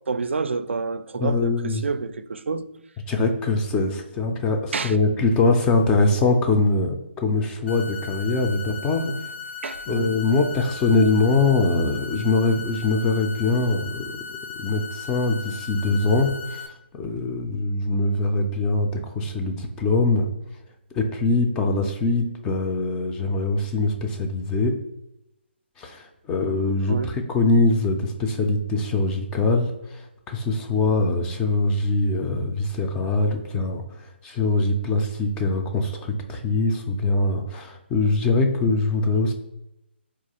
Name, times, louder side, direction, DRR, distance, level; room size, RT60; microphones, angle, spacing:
voice 1, 0.1-2.6 4.7-5.0 9.0-9.2 9.6-10.2 26.9-27.1, right 4 dB, 80° right, 0.3 m, -28 dB
voice 2, 1.2-1.8 3.1-9.1 9.9-14.2 14.6-20.3 20.9-24.8 25.8-39.3, left 3 dB, 10° left, 0.3 m, -23 dB
sound 1, 7.7-16.7, left 6 dB, 75° left, 0.7 m, -37 dB
4.2 x 2.3 x 2.8 m
figure-of-eight pair, 150°, 6 cm